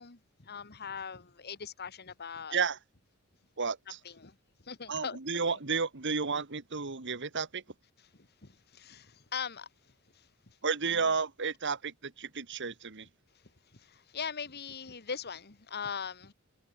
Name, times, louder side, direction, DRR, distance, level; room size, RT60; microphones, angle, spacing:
voice 1, 0.0-2.6 3.9-5.2 8.0-10.6 10.9-11.1 13.7-16.3, left 6 dB, 50° left, 1.6 m, -41 dB
voice 2, 3.6-4.0 4.9-7.6 10.6-13.1, right 5 dB, 55° right, 1.7 m, -32 dB
head